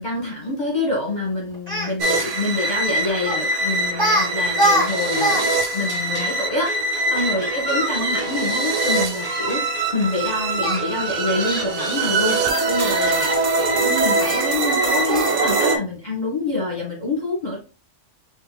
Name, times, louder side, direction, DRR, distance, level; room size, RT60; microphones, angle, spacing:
voice 1, 0.0-6.8 7.1-9.6 9.9-12.4 12.7-17.6, left 2 dB, 35° left, -3 dB, 1.6 m, -26 dB
Speech, 1.5-1.9 3.3-3.5 3.9-4.3 4.5-5.4 5.7-5.8 7.4-9.5 10.6-10.8 11.4-13.5 14.2-14.4 15.1-15.4, right 1 dB, 15° right, 2.6 m, -25 dB
sound 1, 2.0-15.8, right 2 dB, 75° right, 1.1 m, -23 dB
sound 2, 4.1-13.4, right 2 dB, 35° right, 1.0 m, -37 dB
6.7 x 2.8 x 2.2 m, 0.31 s
omnidirectional pair, 1.3 m